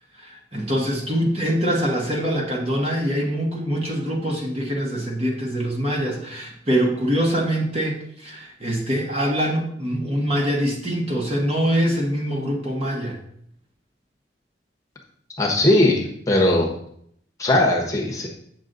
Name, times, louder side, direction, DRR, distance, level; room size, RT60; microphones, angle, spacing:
voice 1, 0.2-13.2 16.3-16.4, equal, 30° right, 0 dB, 1.5 m, -24 dB
voice 2, 15.4-16.7 17.4-18.3, left 1 dB, 20° left, -1 dB, 1.1 m, -19 dB
7.9 x 6.3 x 3.9 m, 0.68 s
head